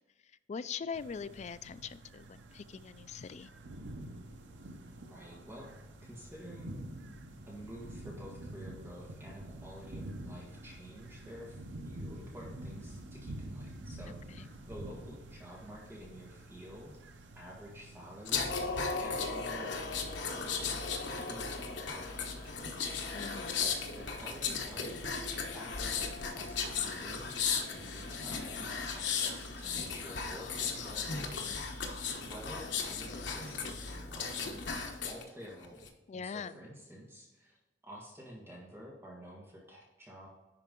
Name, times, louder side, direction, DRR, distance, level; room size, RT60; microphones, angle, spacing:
voice 1, 0.5-3.5 14.3-14.5 23.1-23.7 36.1-36.5, left 6 dB, 40° left, 14 dB, 0.3 m, -42 dB
sound 1, 0.9-19.2, right 1 dB, 90° right, 0.9 m, -47 dB
voice 2, 5.1-5.7 6.0-6.9 7.5-16.9 17.3-25.0 25.5-35.9 36.1-37.6 37.8-40.3, equal, 15° right, -3 dB, 1.6 m, -50 dB
sound 2, 18.2-35.2 35.6-35.9, left 5 dB, 75° left, 1.1 m, -36 dB
10.5 x 4.6 x 3.7 m, 1.1 s
head